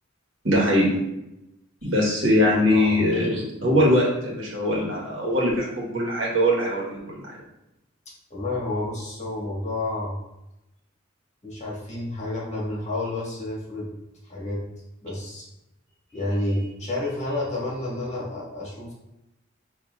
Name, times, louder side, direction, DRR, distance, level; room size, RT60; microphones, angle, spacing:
voice 1, 0.4-0.9 1.8-7.0, left 1 dB, 80° right, -3 dB, 1.3 m, -21 dB
voice 2, 2.5-3.1 8.1-10.2 11.4-13.9 14.2-14.6 15.0-15.5 16.1-18.9, left 2 dB, 35° left, -5 dB, 1.4 m, -30 dB
6.2 x 2.6 x 2.4 m, 0.88 s
head